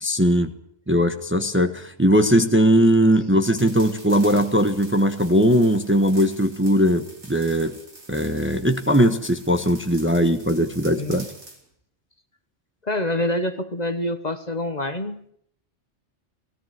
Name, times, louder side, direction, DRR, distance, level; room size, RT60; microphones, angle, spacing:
voice 1, 0.0-0.5 0.9-7.8 8.1-11.3, equal, 10° right, 7 dB, 1.1 m, -19 dB
sound 1, 3.4-11.6, right 2 dB, 65° right, 4.2 m, -45 dB
voice 2, 12.8-15.2, left 1 dB, 35° left, 9 dB, 1.3 m, -26 dB
19.0 x 17.0 x 9.3 m, 0.68 s
omnidirectional pair, 1.3 m